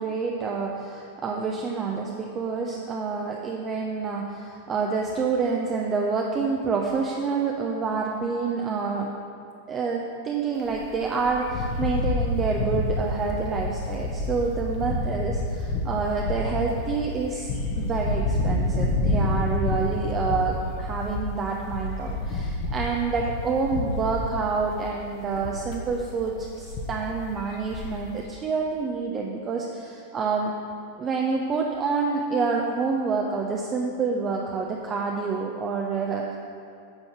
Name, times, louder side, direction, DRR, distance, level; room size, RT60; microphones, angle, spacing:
voice 1, 0.0-9.1 9.7-17.5 17.8-30.5 31.0-36.4, right 4 dB, 25° right, 0 dB, 0.7 m, -28 dB
sound 1, 10.6-28.1, left 2 dB, 40° left, 1.1 m, -28 dB
8.9 x 5.4 x 6.0 m, 2.4 s
figure-of-eight pair, 90°, 0 cm